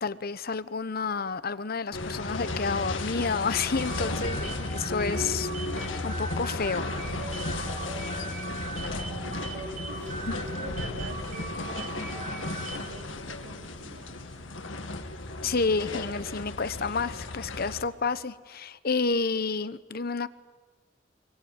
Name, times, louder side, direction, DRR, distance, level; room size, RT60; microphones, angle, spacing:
voice 1, 0.0-5.5 6.0-6.9 10.3-10.4 15.4-20.3, left 4 dB, 55° left, 15 dB, 0.9 m, -30 dB
sound 1, 1.9-17.8, left 2 dB, 85° left, 2.3 m, -34 dB
sound 2, 3.5-13.0, right 3 dB, 40° right, 3.3 m, -40 dB
voice 2, 9.2-10.3 10.6-14.4, right 2 dB, 80° right, 3 dB, 3.5 m, -47 dB
25.0 x 23.5 x 8.9 m, 1.3 s
head